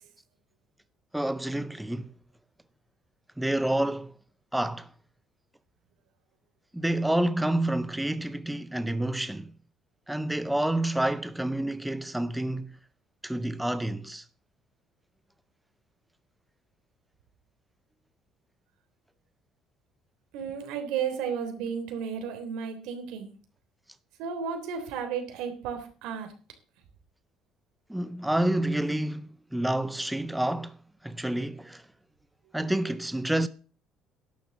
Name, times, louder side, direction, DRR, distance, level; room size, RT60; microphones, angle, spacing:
voice 1, 1.1-2.1 3.4-4.1 4.5-4.9 6.7-9.5 10.1-12.7 13.2-14.2 27.9-30.8 31.0-31.8 32.5-33.5, right 1 dB, 5° right, 0.5 m, -28 dB
voice 2, 20.3-23.3 24.2-26.3, right 7 dB, 90° right, 3.4 m, -33 dB
11.5 x 7.2 x 7.1 m
cardioid pair, 155°, 0 cm